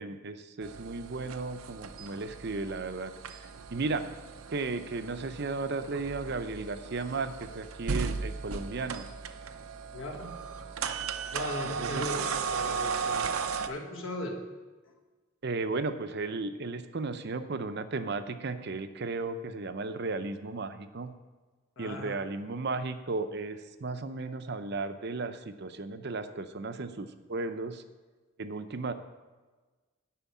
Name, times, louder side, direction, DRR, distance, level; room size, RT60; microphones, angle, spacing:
voice 1, 0.0-3.1 3.4-4.1 4.5-9.1 11.6-12.2 15.4-21.1 21.8-27.8 28.4-28.9, right 3 dB, 50° right, 10 dB, 0.6 m, -35 dB
sound 1, 0.6-13.7, right 5 dB, 90° right, 0.7 m, -36 dB
voice 2, 9.9-10.3 11.3-13.3 13.7-14.4 21.8-22.1, left 2 dB, 70° left, 1 dB, 1.7 m, -38 dB
11.5 x 4.6 x 8.3 m, 1.3 s
head